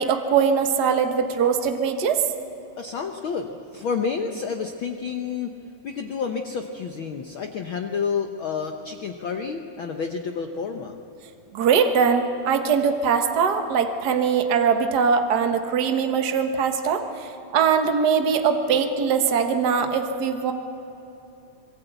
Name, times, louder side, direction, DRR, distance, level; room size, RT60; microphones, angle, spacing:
voice 1, 0.0-2.2 11.5-20.5, right 6 dB, 80° right, 6 dB, 0.9 m, -21 dB
voice 2, 2.8-5.5 5.8-10.9, left 6 dB, 85° left, 4 dB, 1.1 m, -29 dB
26.0 x 22.0 x 8.1 m, 2.9 s
omnidirectional pair, 3.8 m